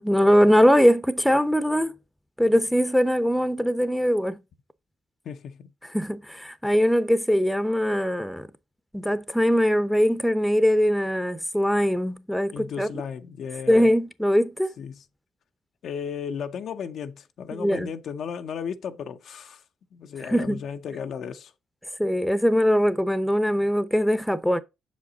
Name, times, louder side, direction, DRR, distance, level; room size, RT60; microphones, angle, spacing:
voice 1, 0.0-2.0 2.4-4.4 5.8-8.5 8.9-12.9 13.7-14.7 17.6-17.9 20.2-20.6 22.0-24.6, equal, ahead, 0.7 m, -21 dB
voice 2, 5.2-5.7 12.5-13.9 14.8-15.0 15.8-19.6 19.9-21.5, left 7 dB, 65° left, 0.6 m, -35 dB
6.5 x 5.1 x 3.9 m
hypercardioid pair, 55°, 0 cm